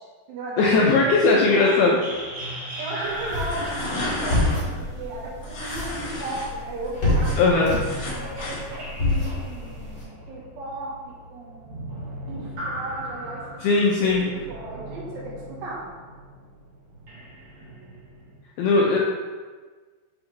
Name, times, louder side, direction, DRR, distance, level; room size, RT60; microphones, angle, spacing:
voice 1, 0.0-1.8 2.8-7.7 8.1-8.4 9.0-11.9 12.3-15.9, right 2 dB, 75° right, -5 dB, 3.5 m, -36 dB
voice 2, 0.6-2.0 7.4-7.8 13.6-14.3 18.6-19.0, left 3 dB, 80° left, -2 dB, 2.2 m, -18 dB
sound 1, 0.8-5.9 6.9-18.4, right 1 dB, 45° right, 2.3 m, -38 dB
sound 2, 3.0-10.0, left 2 dB, 40° left, 1.8 m, -28 dB
sound 3, 3.2-4.6 5.4-6.5 6.8-8.6, left 1 dB, 60° left, 1.5 m, -32 dB
7.0 x 5.5 x 3.3 m, 1.4 s
omnidirectional pair, 5.1 m